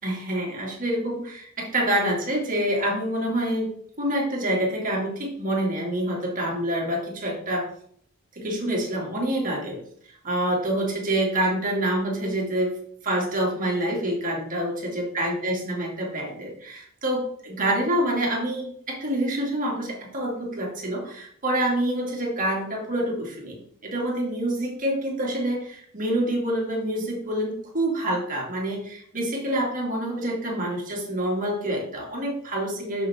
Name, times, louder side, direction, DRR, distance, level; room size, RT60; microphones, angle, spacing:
voice 1, 0.0-3.7 4.0-7.7 8.3-9.8 10.1-12.7 13.0-33.1, right 1 dB, 40° right, -2 dB, 2.6 m, -27 dB
7.7 x 7.2 x 3.6 m, 0.63 s
head